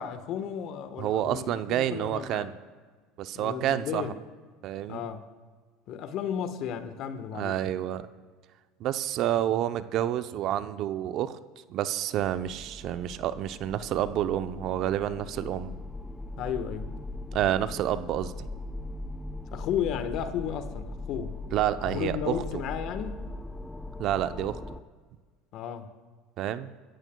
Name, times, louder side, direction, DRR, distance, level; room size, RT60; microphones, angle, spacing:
voice 1, 0.0-2.5 3.3-4.2 4.9-5.2 5.9-7.6 16.4-16.9 19.5-21.3 21.9-23.2 25.5-25.9, left 8 dB, 60° left, 1.2 m, -34 dB
voice 2, 1.0-2.5 3.2-4.0 4.6-5.0 7.3-8.1 8.8-11.4 11.7-15.8 17.3-18.5 21.5-22.4 24.0-24.6 26.4-26.7, right 11 dB, 55° right, 0.6 m, -29 dB
sound 1, 12.2-24.8, left 2 dB, 10° left, 0.8 m, -40 dB
25.5 x 14.5 x 2.3 m
supercardioid pair, 95°, 0 cm